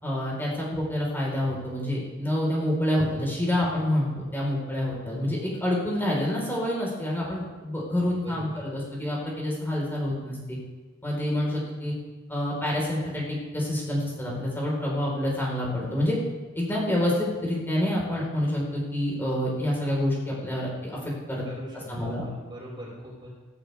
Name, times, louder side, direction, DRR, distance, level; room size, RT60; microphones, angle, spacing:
voice 1, 0.0-10.6 11.0-11.9 12.3-16.2 16.5-21.4 21.9-22.2, left 1 dB, 10° left, -4 dB, 4.8 m, -27 dB
voice 2, 8.2-8.7 21.4-23.3, right 1 dB, 25° right, -5 dB, 5.5 m, -41 dB
17.0 x 16.5 x 3.6 m, 1.3 s
head